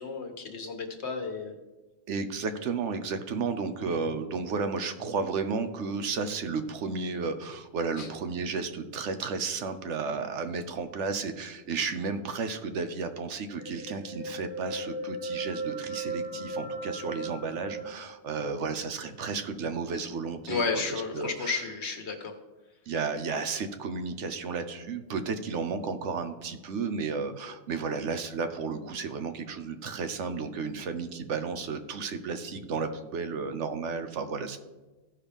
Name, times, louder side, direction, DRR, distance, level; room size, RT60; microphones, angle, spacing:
voice 1, 0.0-1.6 8.0-8.1 20.5-22.3, left 4 dB, 60° left, 4 dB, 1.4 m, -32 dB
voice 2, 2.1-21.6 22.9-34.6, right 4 dB, 75° right, 9 dB, 1.1 m, -33 dB
sound 1, 13.6-17.9, right 2 dB, 25° left, 0.7 m, -36 dB
15.5 x 5.7 x 3.5 m, 1.2 s
omnidirectional pair, 1.3 m